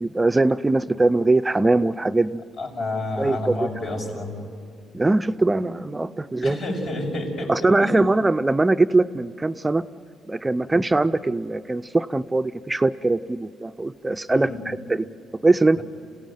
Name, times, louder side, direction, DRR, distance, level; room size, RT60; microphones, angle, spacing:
voice 1, 0.0-2.4 3.2-3.7 4.9-6.6 7.5-9.8 10.3-15.1 15.4-15.8, right 2 dB, 20° right, 10 dB, 0.5 m, -21 dB
voice 2, 2.6-4.4 6.4-7.5 7.8-8.1 14.3-14.6 15.8-15.9, left 2 dB, 65° left, 0 dB, 5.8 m, -29 dB
27.0 x 16.5 x 9.1 m, 2.2 s
cardioid pair, 90°, 0 cm